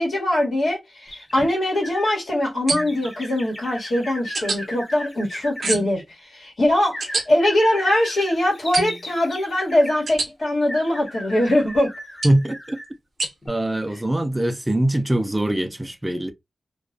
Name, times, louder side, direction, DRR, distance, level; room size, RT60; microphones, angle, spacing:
voice 1, 0.0-11.9, left 1 dB, 75° left, 1.2 m, -22 dB
sound 1, 1.1-2.2 2.8-5.8 6.9-10.0 10.7-12.9 13.4-13.5, equal, 30° left, 0.7 m, -37 dB
sound 2, 2.7-3.1 4.3-4.6 5.6-6.0 7.0-7.2 8.7-9.1 10.1-10.3 12.2-12.5 13.2-13.3, right 3 dB, 65° right, 0.6 m, -26 dB
voice 2, 12.2-12.8 13.5-16.3, right 1 dB, 10° right, 0.3 m, -22 dB
2.4 x 2.1 x 2.4 m
wide cardioid pair, 140°, 0 cm